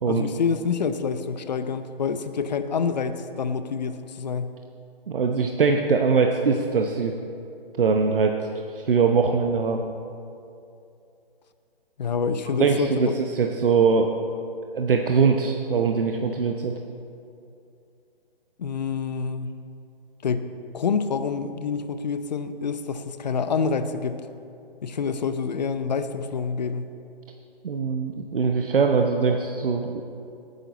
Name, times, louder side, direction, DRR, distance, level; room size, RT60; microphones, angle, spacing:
voice 1, 0.1-4.5 12.0-13.1 18.6-19.5 20.2-20.5 20.7-24.2 24.8-26.9, left 5 dB, 45° left, 10 dB, 0.7 m, -27 dB
voice 2, 5.1-7.1 7.8-9.9 12.6-14.2 14.7-16.7 27.6-30.0, right 5 dB, 65° right, 3 dB, 0.9 m, -22 dB
17.0 x 9.4 x 4.1 m, 2.6 s
hypercardioid pair, 155°, 30 cm